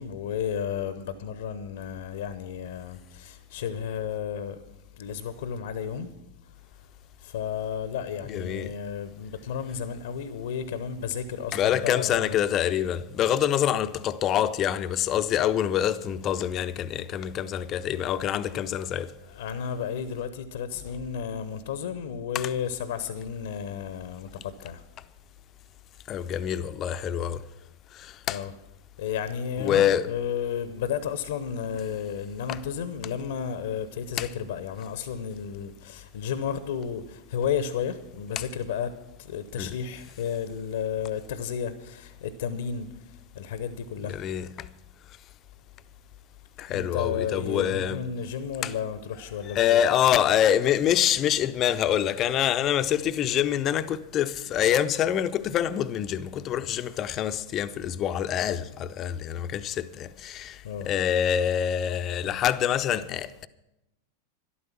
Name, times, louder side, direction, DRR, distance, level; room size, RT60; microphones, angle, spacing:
voice 1, 0.0-4.6 4.9-6.1 7.2-12.4 19.3-24.8 28.3-28.5 29.0-38.9 39.2-44.2 46.7-49.8 60.6-60.9, left 7 dB, 60° left, 0.8 m, -32 dB
voice 2, 8.3-8.7 11.5-19.1 22.3-22.5 26.1-27.4 27.9-28.4 29.6-30.1 32.5-32.6 34.2-34.3 38.4-38.5 39.6-39.8 44.1-44.7 46.6-48.0 48.6-48.7 49.5-63.5, left 10 dB, 30° left, 0.6 m, -26 dB
12.5 x 12.0 x 5.9 m
figure-of-eight pair, 90°, 0 cm